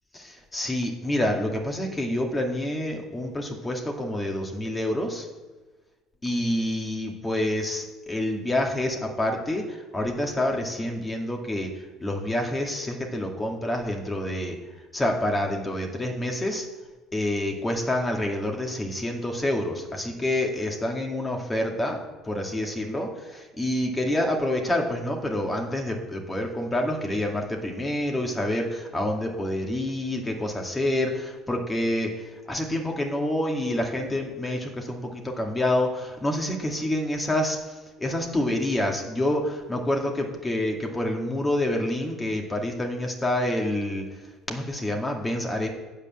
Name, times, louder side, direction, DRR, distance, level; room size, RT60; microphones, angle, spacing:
voice 1, 0.1-5.3 6.2-9.6 9.9-11.7 12.0-14.6 14.9-16.7 17.1-32.1 32.5-44.0 44.5-45.7, left 1 dB, 20° left, 1 dB, 2.2 m, -27 dB
9.4 x 4.9 x 7.6 m, 1.2 s
supercardioid pair, 80°, 0 cm